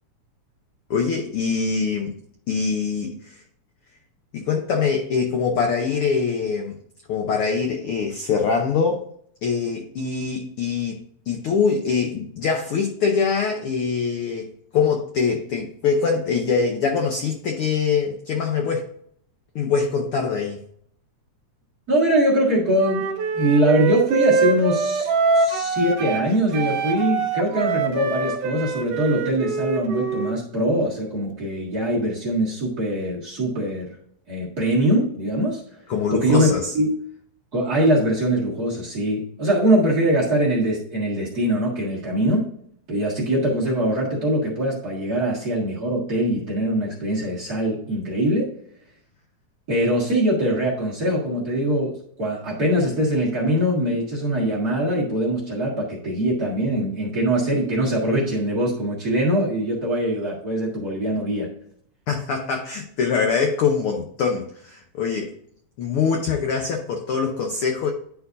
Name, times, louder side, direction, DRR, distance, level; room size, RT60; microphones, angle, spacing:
voice 1, 0.9-2.1 2.5-3.4 4.3-6.8 7.1-9.0 9.4-14.5 14.7-18.9 19.5-20.6 35.9-36.7 62.1-65.3 65.8-67.9, left 5 dB, 80° left, 3 dB, 1.2 m, -23 dB
voice 2, 21.9-33.9 34.3-35.6 36.1-36.9 37.5-42.5 42.9-48.5 49.7-61.5, right 1 dB, 35° right, -3 dB, 1.7 m, -22 dB
Wind instrument woodwind instrument, 22.7-26.3 26.5-30.4, right 4 dB, 65° right, 2.0 m, -24 dB
10.5 x 4.6 x 2.6 m, 0.64 s
omnidirectional pair, 3.5 m